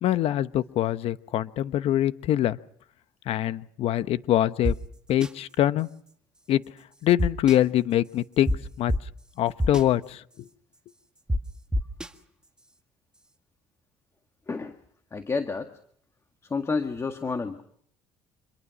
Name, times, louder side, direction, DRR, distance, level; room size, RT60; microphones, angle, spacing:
voice 1, 0.0-2.6 3.3-4.7 5.1-5.9 6.5-6.6 7.0-8.9 9.4-10.2, left 12 dB, 65° left, 14 dB, 1.0 m, -24 dB
sound 1, 4.6-4.7 5.2-5.3 7.2-7.6 8.5-8.6 8.9-9.0 9.6-9.8 11.3-11.4 11.7-12.1, equal, 5° right, 1.7 m, -24 dB
voice 2, 15.1-15.7 16.4-17.6, left 4 dB, 25° left, 7 dB, 1.8 m, -30 dB
26.5 x 22.0 x 6.3 m, 0.64 s
cardioid pair, 100°, 11 cm